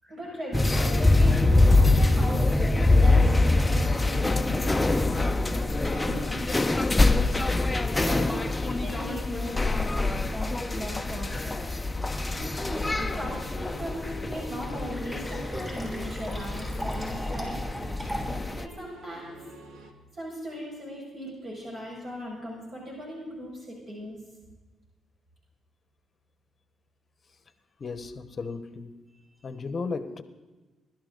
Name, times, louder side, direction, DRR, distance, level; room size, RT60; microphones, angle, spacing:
voice 1, 0.0-6.8 7.1-11.6 12.5-17.6 18.4-19.4 20.1-24.2, equal, 45° right, 6.0 m, -38 dB
sound 1, 0.5-18.7, left 2 dB, 15° left, 0.7 m, -24 dB
sound 2, 12.2-19.9, right 2 dB, 80° right, 1.7 m, -49 dB
Fill (with liquid), 14.5-18.5, equal, 15° right, 6.1 m, -38 dB
voice 2, 27.8-29.0 29.4-30.2, left 4 dB, 40° left, 1.0 m, -35 dB
21.5 x 12.5 x 3.9 m
cardioid pair, 90°, 0 cm